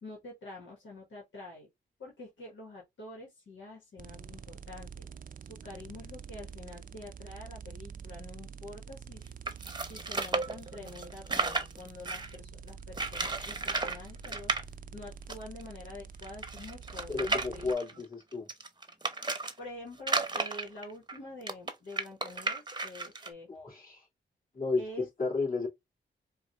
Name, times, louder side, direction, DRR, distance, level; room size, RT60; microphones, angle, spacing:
voice 1, 0.0-1.7 2.0-5.1 5.4-9.2 9.5-14.5 14.9-18.0 19.6-23.5 24.8-25.1, left 2 dB, 85° left, 1.5 m, -47 dB
sound 1, 4.0-17.7, right 6 dB, 45° right, 0.4 m, -47 dB
sound 2, 9.5-12.4 12.9-14.0 14.2-14.6 15.3-15.4 15.6-15.7 16.2-19.5 20.0-23.3, right 3 dB, 25° right, 0.8 m, -33 dB
voice 2, 17.1-18.5 23.5-24.1 24.5-24.8 25.2-25.7, left 3 dB, 45° left, 2.5 m, -32 dB
4.9 x 2.5 x 2.4 m
cardioid pair, 55°, 19 cm